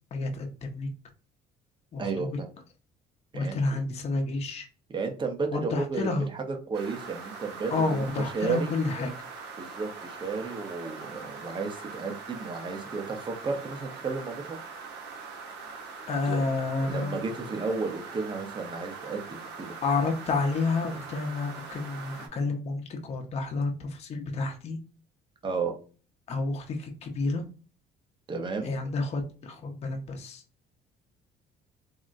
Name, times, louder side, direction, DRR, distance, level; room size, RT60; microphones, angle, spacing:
voice 1, 0.1-0.9 1.9-2.4 3.3-4.7 5.5-6.3 7.7-9.1 16.1-17.2 19.8-24.8 26.3-27.4 28.6-30.4, left 3 dB, 40° left, 3 dB, 0.6 m, -30 dB
voice 2, 2.0-2.5 3.3-3.6 4.9-8.0 8.3-8.7 9.6-14.6 16.3-16.5 16.8-19.7 25.4-25.7 28.3-28.7, right 4 dB, 30° right, 5 dB, 0.7 m, -33 dB
sound 1, 6.7-22.3, right 4 dB, 85° right, 0.8 m, -42 dB
3.6 x 2.1 x 2.5 m, 0.38 s
cardioid pair, 110°, 17 cm